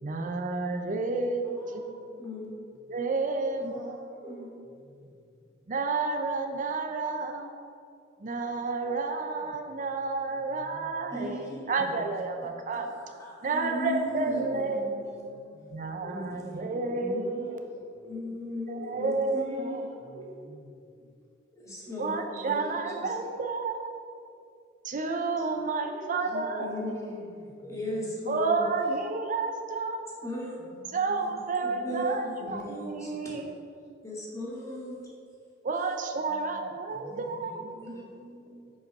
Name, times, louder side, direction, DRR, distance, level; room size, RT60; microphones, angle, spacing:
voice 1, 0.0-2.0 2.9-4.0 5.7-7.5 8.2-12.9 13.4-15.0 15.7-17.7 18.7-20.0 22.0-23.9 24.8-26.8 28.3-30.1 30.9-33.6 35.6-37.7, right 3 dB, 45° right, 5 dB, 0.6 m, -31 dB
voice 2, 1.6-1.9 2.2-2.6 3.6-3.8 4.1-4.6 11.1-11.6 11.9-12.0 12.7-15.3 16.0-17.5 18.0-19.9 20.1-20.2 21.5-22.6 22.9-23.1 25.8-27.3 27.6-28.7 30.2-30.6 31.6-33.3 34.0-35.0 37.1-37.2 37.8-38.0, left 1 dB, 15° left, -5 dB, 1.9 m, -37 dB
voice 3, 20.0-20.7 26.7-27.8 30.7-30.9 32.7-33.2 37.8-38.7, right 2 dB, 60° right, 0 dB, 1.2 m, -50 dB
7.2 x 5.3 x 5.3 m, 2.4 s
head